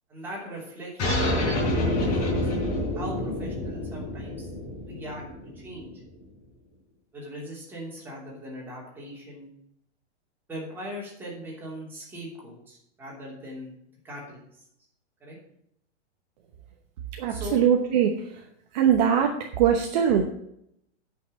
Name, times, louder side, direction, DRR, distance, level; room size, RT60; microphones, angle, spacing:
voice 1, 0.1-1.4 1.9-2.5 2.9-4.5 4.8-5.2 5.5-5.9 7.1-9.5 10.5-13.7 14.0-14.4 15.2-15.4 17.3-17.6, equal, 5° right, -5 dB, 3.0 m, -39 dB
sound 1, 1.0-6.0, left 1 dB, 30° left, 4.2 m, -27 dB
voice 2, 17.2-18.1 18.7-19.3 19.6-20.2, right 8 dB, 40° right, 2 dB, 1.0 m, -21 dB
9.6 x 5.9 x 7.4 m, 0.73 s
supercardioid pair, 175°, 34 cm